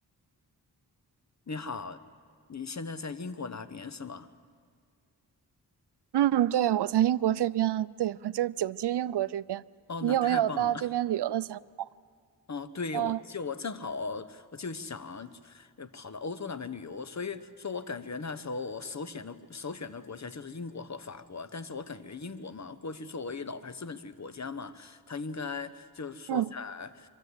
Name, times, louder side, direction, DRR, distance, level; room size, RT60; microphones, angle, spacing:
voice 1, 1.5-2.0 2.5-4.3 9.9-10.9 12.5-27.1, left 4 dB, 40° left, 1.1 m, -38 dB
voice 2, 6.1-9.6 10.0-11.9 12.9-13.2 26.3-26.5, right 12 dB, 80° right, 0.5 m, -27 dB
25.5 x 13.0 x 8.2 m
cardioid pair, 55°, 40 cm